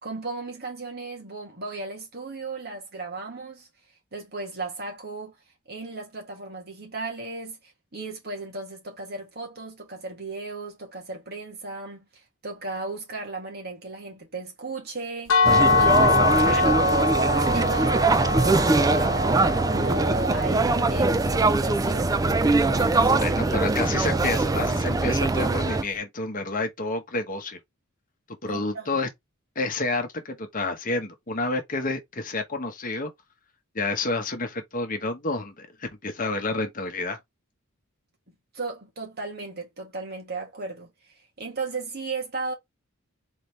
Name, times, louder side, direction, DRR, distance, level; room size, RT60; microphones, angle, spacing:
voice 1, 0.0-3.7 4.1-5.4 5.7-19.4 19.7-22.3 22.6-23.6 28.5-29.0 38.5-42.5, right 3 dB, 50° right, 2.1 m, -35 dB
sound 1, 15.3-21.1, left 3 dB, 65° left, 1.0 m, -23 dB
sound 2, 15.4-25.8, right 2 dB, 15° right, 0.3 m, -22 dB
voice 2, 23.2-27.6 28.4-29.1 29.5-33.1 33.7-37.2, left 3 dB, 40° left, 1.0 m, -29 dB
4.1 x 3.8 x 3.2 m
head